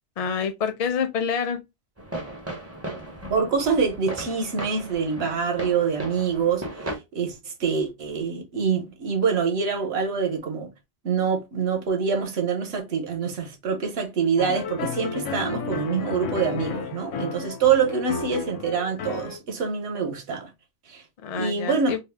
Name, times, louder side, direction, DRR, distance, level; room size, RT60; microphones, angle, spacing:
voice 1, 0.2-1.6 21.2-22.0, left 6 dB, 50° left, 0.4 m, -27 dB
sound 1, 2.0-7.0, right 1 dB, 20° right, 0.4 m, -36 dB
voice 2, 3.3-10.7 11.0-20.5 20.9-21.0 21.3-21.9, right 6 dB, 65° right, 1.0 m, -25 dB
sound 2, 14.4-19.4, left 5 dB, 80° left, 0.9 m, -32 dB
2.7 x 2.0 x 3.2 m
omnidirectional pair, 1.2 m